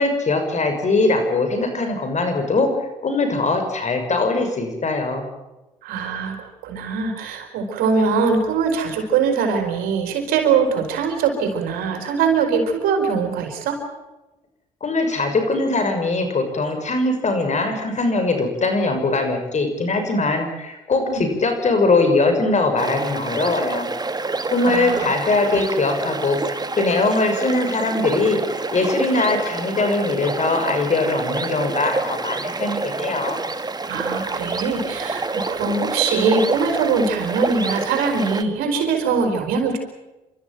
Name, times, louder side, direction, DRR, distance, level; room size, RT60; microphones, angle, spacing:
voice 1, 0.0-2.7 3.0-5.2 14.8-23.9 24.5-33.4, left 3 dB, 50° left, 6 dB, 6.4 m, -21 dB
voice 2, 5.8-13.8 21.1-21.2 24.6-25.1 25.4-25.6 33.9-39.8, right 5 dB, 90° right, 4 dB, 4.3 m, -22 dB
sound 1, 22.8-38.4, right 3 dB, 25° right, 1.7 m, -27 dB
28.5 x 13.5 x 9.2 m, 1.0 s
supercardioid pair, 55°, 15 cm